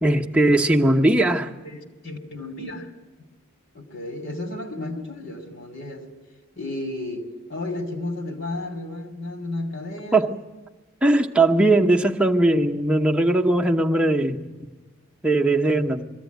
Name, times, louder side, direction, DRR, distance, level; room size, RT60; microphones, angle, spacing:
voice 1, 0.0-1.5 10.1-10.3 11.0-14.4 15.2-16.0, right 2 dB, 5° right, 1 dB, 1.0 m, -19 dB
voice 2, 1.6-2.9 3.7-6.1 6.6-10.3, left 2 dB, 55° left, 6 dB, 2.7 m, -33 dB
22.0 x 15.5 x 9.3 m, 1.2 s
head